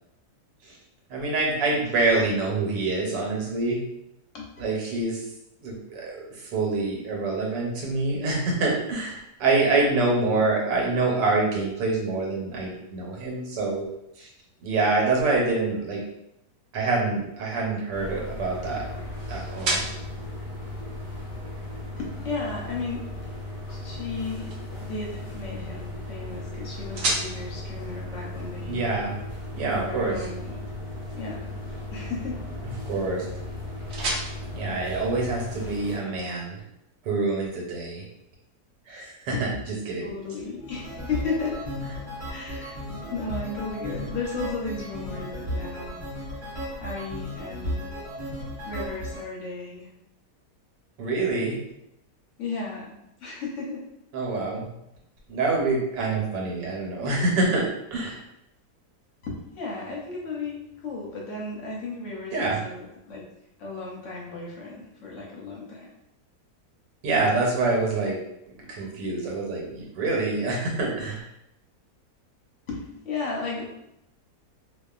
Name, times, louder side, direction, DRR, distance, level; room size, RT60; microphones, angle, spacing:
voice 1, 1.1-3.8 4.6-5.2 5.6-13.9 14.2-14.3 14.6-16.0 16.7-18.9 19.3-19.8 28.7-29.2 29.5-30.3 32.9-33.3 34.5-36.6 37.0-38.0 38.9-39.5 39.9-40.1 51.0-51.6 54.1-54.6 55.3-57.6 57.9-58.2 62.3-62.6 67.0-68.2 68.5-71.2, right 3 dB, 90° right, -2 dB, 1.4 m, -26 dB
sound 1, 16.9-35.7, right 2 dB, 65° right, 0.8 m, -38 dB
sound 2, 17.9-36.0, left 1 dB, 30° left, 0.5 m, -36 dB
voice 2, 22.0-23.1 23.7-24.5 24.8-28.9 29.8-30.6 31.1-31.5 31.9-32.4 36.1-36.2 39.3-39.4 40.0-41.7 42.3-42.8 43.1-46.0 46.8-47.9 48.7-49.9 52.4-52.9 53.2-53.9 57.0-57.1 59.2-63.2 63.6-65.9 68.6-68.7 72.7-73.7, left 4 dB, 60° left, -2 dB, 0.8 m, -34 dB
sound 3, 40.6-49.2, equal, 35° right, 1.1 m, -35 dB
2.8 x 2.3 x 2.3 m, 0.83 s
omnidirectional pair, 1.8 m